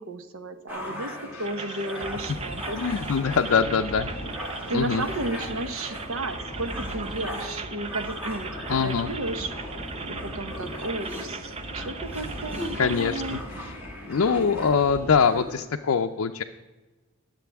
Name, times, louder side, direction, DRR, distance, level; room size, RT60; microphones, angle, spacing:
voice 1, 0.0-2.8 4.7-9.5 10.1-13.4, right 1 dB, 70° right, 8 dB, 1.0 m, -33 dB
sound 1, 0.7-15.7, left 1 dB, 10° right, 2.0 m, -40 dB
sound 2, 1.4-13.4, right 4 dB, 25° right, 0.5 m, -38 dB
sound 3, 2.0-15.2, equal, 10° left, 4.3 m, -40 dB
voice 2, 2.7-4.1 4.7-5.0 8.7-9.1 12.8-13.2 14.1-16.4, left 5 dB, 70° left, 4 dB, 0.5 m, -23 dB
21.5 x 7.7 x 3.5 m, 1.2 s
head